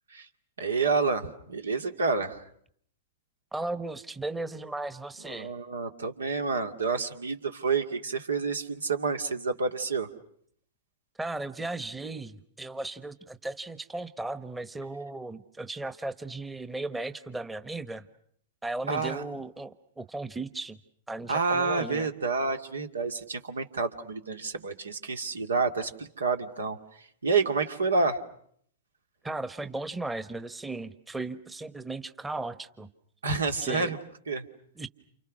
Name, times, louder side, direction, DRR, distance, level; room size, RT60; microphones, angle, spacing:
voice 1, 0.6-2.4 5.3-10.1 18.9-19.2 21.3-28.2 33.2-34.0 34.3-34.4, right 4 dB, 80° right, 6 dB, 2.4 m, -29 dB
voice 2, 3.5-5.5 11.2-18.1 18.6-20.8 21.1-22.1 29.2-32.9 33.6-33.9 34.8-34.9, right 2 dB, 10° right, 12 dB, 1.2 m, -36 dB
29.5 x 29.0 x 6.4 m, 0.67 s
figure-of-eight pair, 105°, 0 cm